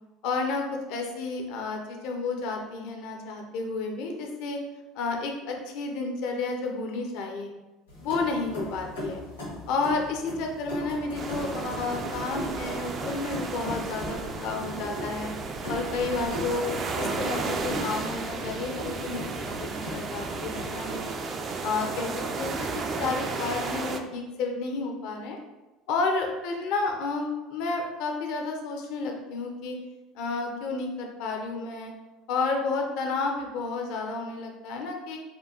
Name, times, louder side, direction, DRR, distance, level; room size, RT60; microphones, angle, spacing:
voice 1, 0.2-4.6 4.9-7.5 8.0-9.2 9.7-15.3 15.7-16.7 16.9-21.1 21.6-22.1 22.4-25.4 25.9-29.8 30.1-31.9 32.3-35.2, left 3 dB, 60° left, 2 dB, 0.5 m, -31 dB
sound 1, 7.9-21.3, left 1 dB, 90° left, 1.2 m, -38 dB
sound 2, 11.1-24.0, right 4 dB, 40° right, 0.3 m, -33 dB
4.3 x 2.3 x 2.8 m, 1.1 s
figure-of-eight pair, 65°, 0 cm